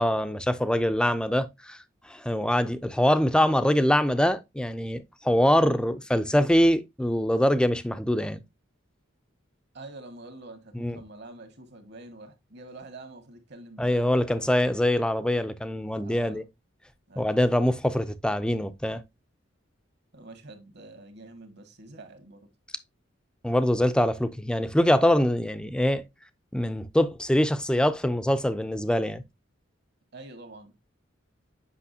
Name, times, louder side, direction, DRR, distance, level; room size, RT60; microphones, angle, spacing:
voice 1, 0.0-1.8 2.1-8.4 10.7-11.0 13.8-16.4 17.2-19.0 23.4-26.0 26.5-29.2, left 1 dB, 5° left, 0.5 m, -24 dB
voice 2, 9.7-14.1 16.0-16.5 17.1-17.5 20.1-22.5 30.1-30.7, right 2 dB, 55° right, 1.8 m, -46 dB
8.4 x 5.7 x 2.7 m
head